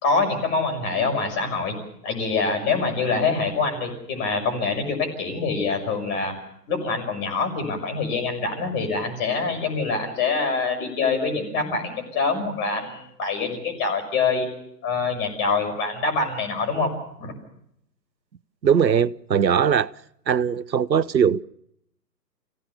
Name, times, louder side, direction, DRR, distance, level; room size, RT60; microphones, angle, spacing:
voice 1, 0.0-1.8 2.0-6.3 6.7-14.5 14.8-16.9 17.2-17.3, left 4 dB, 25° left, 6.1 m, -25 dB
voice 2, 18.6-19.9 20.3-21.4, right 7 dB, 85° right, 0.8 m, -20 dB
28.5 x 17.0 x 6.9 m
figure-of-eight pair, 135°, 50 cm